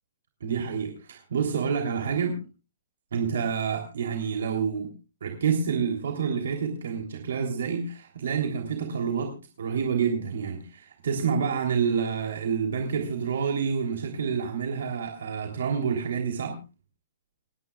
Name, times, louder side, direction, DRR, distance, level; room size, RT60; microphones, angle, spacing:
voice 1, 0.4-2.4 3.1-4.9 5.2-16.6, right 6 dB, 75° right, 3 dB, 3.3 m, -28 dB
29.0 x 10.5 x 2.4 m, 0.30 s
hypercardioid pair, 170°, 0 cm